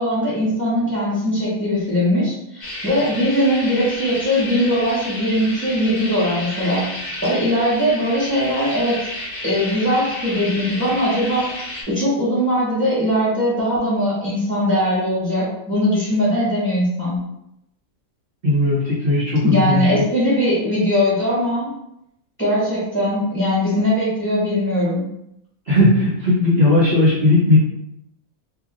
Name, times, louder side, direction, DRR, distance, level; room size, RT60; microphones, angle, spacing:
voice 1, 0.0-6.9 7.2-9.0 9.4-11.5 11.9-17.2 19.4-21.7 22.4-25.1, equal, 10° left, -9 dB, 1.4 m, -20 dB
sound 1, 2.6-11.8, left 1 dB, 45° left, 1.1 m, -31 dB
voice 2, 18.4-20.0 25.7-27.6, left 2 dB, 45° right, -9 dB, 1.2 m, -17 dB
2.9 x 2.5 x 3.7 m, 0.80 s
omnidirectional pair, 1.4 m